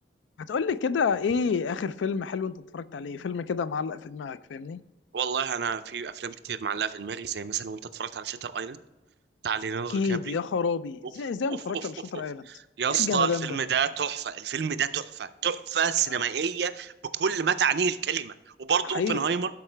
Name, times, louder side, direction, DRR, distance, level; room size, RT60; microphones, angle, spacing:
voice 1, 0.5-4.8 9.9-12.5 12.9-13.6 18.8-19.2, left 5 dB, 85° left, 0.4 m, -29 dB
voice 2, 5.1-8.8 9.4-10.4 12.8-18.3 18.6-19.5, right 7 dB, 60° right, 0.4 m, -28 dB
11.5 x 4.7 x 3.3 m
head